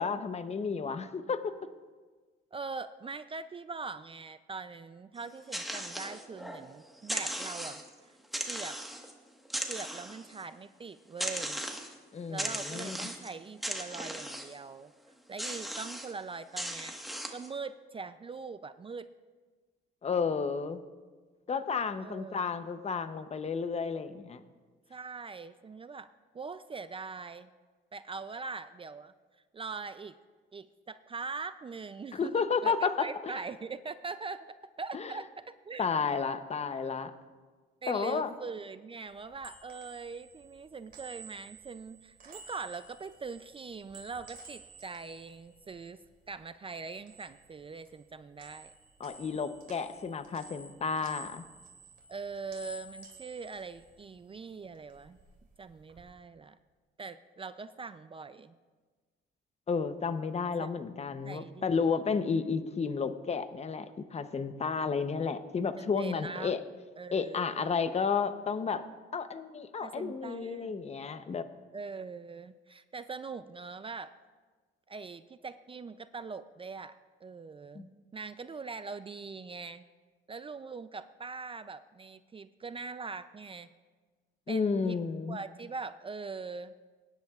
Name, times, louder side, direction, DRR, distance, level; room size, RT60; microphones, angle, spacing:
voice 1, 0.0-1.5 12.1-13.0 20.0-20.8 21.5-24.4 32.1-33.3 34.9-35.1 35.8-37.1 37.9-38.3 49.0-51.4 59.7-66.6 67.1-68.8 69.1-71.4 77.7-77.9 84.5-85.4, left 5 dB, 35° left, 10 dB, 0.8 m, -32 dB
voice 2, 2.5-7.8 8.5-8.8 9.7-11.6 12.3-14.9 15.3-17.0 17.3-19.1 22.0-22.5 24.9-27.5 27.9-29.1 29.5-30.2 30.5-34.5 34.8-35.9 37.8-46.0 46.3-48.7 52.1-55.2 55.6-56.6 57.0-58.5 60.6-60.7 61.2-62.0 65.8-66.5 67.0-67.8 69.8-70.8 71.7-74.1 74.9-77.9 78.1-79.8 80.3-83.7 84.5-85.0 85.3-86.8, right 4 dB, 25° right, 12 dB, 0.4 m, -42 dB
sound 1, 5.2-6.7 7.0-7.9 8.3-9.1 9.5-10.4 11.2-12.0 12.4-13.3 13.6-14.6 15.4-16.1 16.6-17.5, equal, ahead, 1.4 m, -37 dB
sound 2, 39.1-46.4 46.7-48.1 48.4-54.4 54.7-56.0, right 2 dB, 45° right, 2.8 m, -52 dB
22.5 x 10.5 x 2.4 m, 1.4 s
cardioid pair, 90°, 20 cm